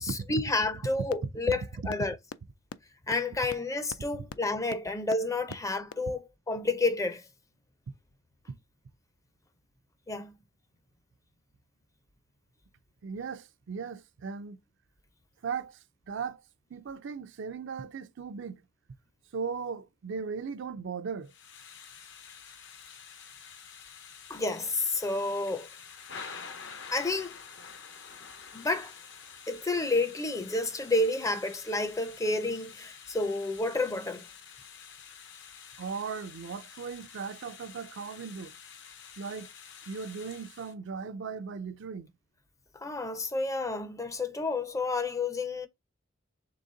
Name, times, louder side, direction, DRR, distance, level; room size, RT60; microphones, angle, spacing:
voice 1, 0.0-2.2 3.1-7.2 10.1-10.4 24.3-25.7 26.9-27.4 28.5-28.9 29.5-34.2 42.7-45.7, left 2 dB, 15° left, 0.5 m, -30 dB
sound 1, 1.1-1.2 1.5-1.6 1.9-2.0 2.3-2.4 2.7-2.8 3.1-3.2 3.5-3.6 3.9-4.0 4.3-4.4 4.7-4.8 5.1-5.2 5.5-5.6 5.9-6.0, left 6 dB, 85° left, 0.4 m, -39 dB
voice 2, 13.0-14.6 15.4-15.8 16.1-16.4 16.7-18.6 19.3-21.3 25.5-25.7 35.8-38.5 39.2-39.5 39.9-42.1, right 5 dB, 60° right, 0.4 m, -37 dB
Thunder / Rain, 21.3-40.7, left 6 dB, 60° left, 0.9 m, -48 dB
3.9 x 3.4 x 3.7 m
head